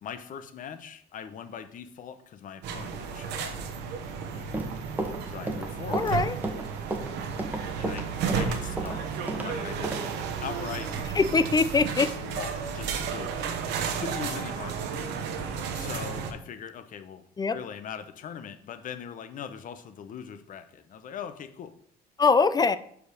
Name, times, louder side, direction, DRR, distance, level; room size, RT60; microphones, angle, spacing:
voice 1, 0.0-3.5 5.3-6.2 7.8-8.1 8.3-10.0 10.4-10.9 12.0-13.5 14.0-14.9 15.7-17.2 17.5-21.7, left 8 dB, 50° left, 10 dB, 0.8 m, -40 dB
sound 1, 2.6-16.3, right 6 dB, 85° right, 1.1 m, -33 dB
Run, 4.4-9.5 9.8-10.0, right 2 dB, 10° right, 1.2 m, -32 dB
voice 2, 5.9-6.3 11.2-12.1 17.4-17.6 22.2-22.8, left 4 dB, 25° left, 14 dB, 0.4 m, -22 dB
sound 2, 11.5-12.7 13.1-14.5, right 13 dB, 70° right, 0.4 m, -41 dB
5.1 x 5.0 x 6.4 m, 0.63 s
cardioid pair, 110°, 17 cm